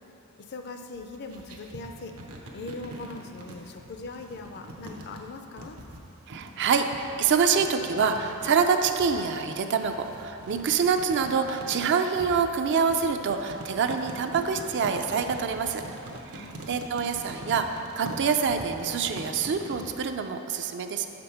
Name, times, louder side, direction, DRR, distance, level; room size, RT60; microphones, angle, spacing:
voice 1, 0.5-2.1 2.5-5.8 16.4-17.2, left 3 dB, 50° left, 5 dB, 0.5 m, -41 dB
sound 1, 0.9-20.0, right 1 dB, 75° right, 0.8 m, -43 dB
voice 2, 6.3-15.8 16.3-21.1, right 6 dB, 55° right, 6 dB, 0.4 m, -26 dB
6.2 x 5.2 x 5.7 m, 3.0 s
head